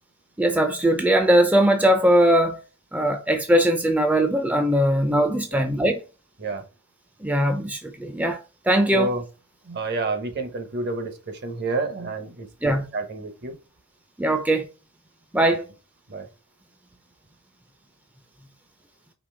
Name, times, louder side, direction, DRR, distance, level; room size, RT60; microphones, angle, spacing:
voice 1, 0.4-2.6 2.9-6.0 7.2-8.4 8.7-9.1 12.6-12.9 14.2-14.7 15.3-15.6, right 1 dB, 5° right, 0.4 m, -20 dB
voice 2, 8.9-9.2 9.6-13.6 16.1-16.3, right 2 dB, 50° right, 0.9 m, -29 dB
5.2 x 2.9 x 3.3 m
head